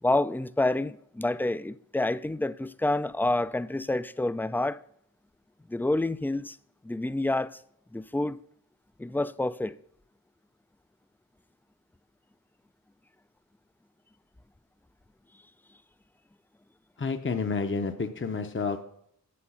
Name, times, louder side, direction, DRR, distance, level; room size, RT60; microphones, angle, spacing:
voice 1, 0.0-4.8 5.7-6.6 6.8-7.6 7.9-8.4 9.0-9.8, left 2 dB, 5° left, 0.3 m, -28 dB
voice 2, 17.0-18.8, left 4 dB, 35° left, 0.7 m, -30 dB
8.5 x 7.8 x 5.6 m
wide cardioid pair, 50°, 34 cm